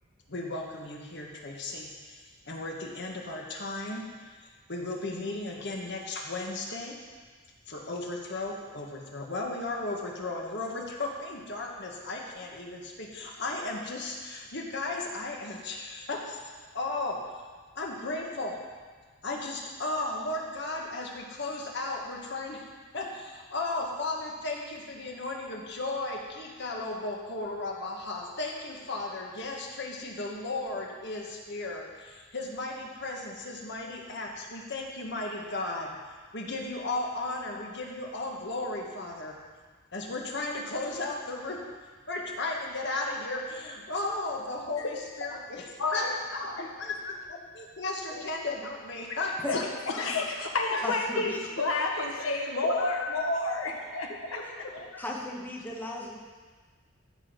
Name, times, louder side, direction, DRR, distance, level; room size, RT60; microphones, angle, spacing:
voice 1, 0.3-4.4 4.7-7.0 7.7-17.2 17.8-18.6 19.2-22.7 22.9-36.0 36.3-39.4 39.9-41.6 42.1-46.1 46.3-46.5 46.8-50.0 52.6-53.2 53.6-53.7 54.1-54.7, left 2 dB, 60° left, 0 dB, 1.7 m, -35 dB
voice 2, 45.8-46.7 49.5-49.6 50.0-54.4 54.7-55.0, left 2 dB, 85° left, 1 dB, 1.4 m, -30 dB
voice 3, 50.8-51.4 54.4-54.5 55.0-56.2, left 1 dB, 10° left, -2 dB, 1.2 m, -36 dB
14.5 x 6.3 x 5.3 m, 1.5 s
head